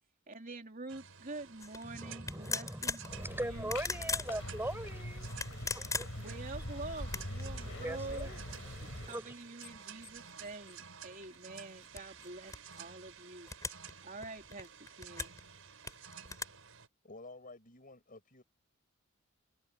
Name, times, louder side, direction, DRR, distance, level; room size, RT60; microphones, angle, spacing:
voice 1, 0.3-3.7 6.2-8.3 8.8-13.5 14.0-14.7 15.0-15.3, right 3 dB, 40° right, 3.3 m, -46 dB
sound 1, 0.9-16.9, right 7 dB, 75° right, 6.1 m, -53 dB
sound 2, 1.6-1.8 2.3-3.1 3.6-4.3 5.2-6.4 7.0-7.4 8.1-8.2 8.7-10.8 11.2-12.8 13.5-13.9 14.2-15.4 15.8-16.4, left 4 dB, 15° left, 5.2 m, -40 dB
voice 2, 1.8-6.3 7.4-9.3, right 1 dB, 10° right, 6.0 m, -42 dB
sound 3, 3.1-9.1, left 1 dB, 70° left, 5.5 m, -43 dB
voice 3, 17.0-18.4, left 2 dB, 40° left, 7.6 m, -51 dB
head